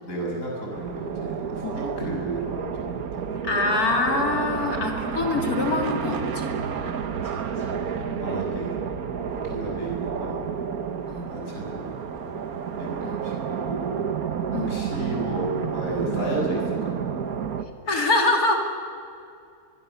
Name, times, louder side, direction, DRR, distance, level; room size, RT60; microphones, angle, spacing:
voice 1, 0.0-3.2 4.5-4.7 6.7-8.7 9.3-10.4 11.3-12.4 12.8-13.8 14.7-16.9, right 1 dB, 60° left, -2 dB, 6.8 m, -33 dB
sound 1, 0.7-17.6, right 7 dB, 75° right, 1.5 m, -30 dB
voice 2, 3.4-6.6 7.7-8.4 11.1-11.3 13.0-13.2 14.5-14.7 17.9-18.5, left 3 dB, 80° left, 1 dB, 3.3 m, -25 dB
23.5 x 23.0 x 7.1 m, 2.4 s
omnidirectional pair, 1.6 m